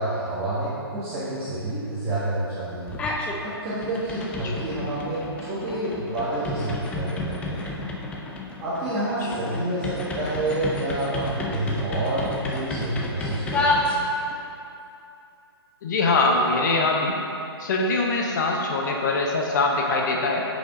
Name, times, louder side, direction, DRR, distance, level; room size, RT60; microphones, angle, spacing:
voice 1, 0.0-2.9 3.4-7.7 8.6-13.8, right 1 dB, 20° right, -11 dB, 1.5 m, -28 dB
sound 1, 2.9-3.4 3.7-14.4, left 2 dB, 10° left, 0.5 m, -30 dB
voice 2, 15.8-17.2 17.6-20.5, left 3 dB, 45° left, 0 dB, 0.9 m, -23 dB
9.0 x 5.2 x 3.8 m, 2.7 s
hypercardioid pair, 145°, 14 cm